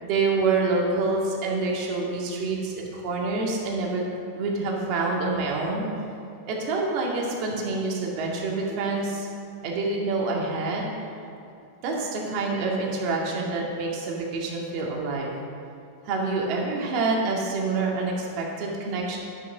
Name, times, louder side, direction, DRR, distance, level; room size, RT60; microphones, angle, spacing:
voice 1, 0.0-4.0 4.3-5.9 6.5-9.3 9.6-10.9 11.8-15.3 16.0-19.2, right 3 dB, 50° right, -2 dB, 2.2 m, -27 dB
10.5 x 6.6 x 5.1 m, 2.5 s
hypercardioid pair, 110°, 0 cm